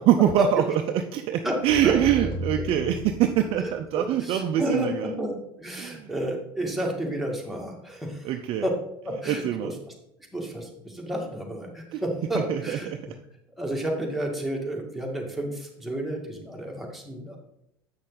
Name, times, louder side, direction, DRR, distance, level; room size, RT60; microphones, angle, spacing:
voice 1, 0.1-0.6 0.9-5.1 5.8-6.1 8.2-8.7 9.3-9.7 11.9-12.0 12.3-13.0, right 10 dB, 50° right, 6 dB, 0.5 m, -24 dB
sound 1, 1.7-3.9, equal, 50° left, 3.2 m, -35 dB
voice 2, 3.6-4.9 5.2-8.3 8.6-8.8 9.0-9.8 10.3-12.9 13.6-17.4, right 1 dB, ahead, -1 dB, 2.1 m, -31 dB
7.6 x 6.2 x 4.0 m, 0.80 s
hypercardioid pair, 75°, 12 cm